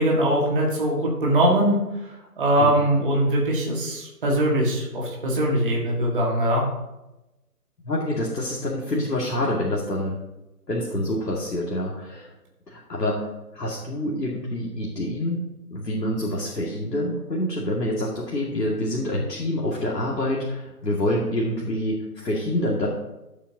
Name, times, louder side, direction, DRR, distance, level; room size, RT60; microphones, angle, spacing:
voice 1, 0.0-1.8 2.4-6.7, right 1 dB, 35° right, -3 dB, 1.9 m, -21 dB
voice 2, 7.8-10.2 10.7-12.3 12.7-15.4 15.7-22.9, left 1 dB, 85° left, -4 dB, 2.4 m, -27 dB
13.5 x 8.4 x 2.9 m, 0.96 s
figure-of-eight pair, 165°, 47 cm